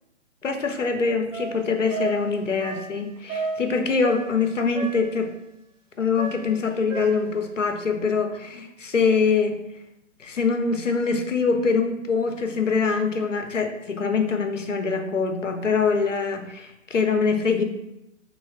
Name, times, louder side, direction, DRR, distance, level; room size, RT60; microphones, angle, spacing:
voice 1, 0.4-5.3 6.0-9.6 10.2-17.6, left 5 dB, 75° left, 5 dB, 0.8 m, -24 dB
sound 1, 1.3-4.5 4.7-5.2 6.2-7.4, right 3 dB, 80° right, 1.2 m, -33 dB
3.2 x 3.1 x 4.4 m, 0.85 s
figure-of-eight pair, 135°, 38 cm